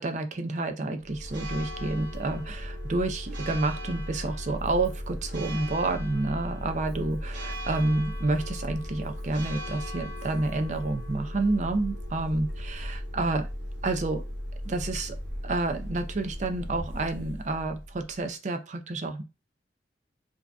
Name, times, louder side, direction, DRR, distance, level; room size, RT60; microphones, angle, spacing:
voice 1, 0.0-13.5 13.8-14.2 14.6-15.1 15.4-19.2, right 2 dB, 40° right, 6 dB, 0.5 m, -29 dB
Church bell, 1.0-18.2, equal, 80° right, 1.0 m, -36 dB
4.5 x 2.8 x 2.2 m, 0.28 s
head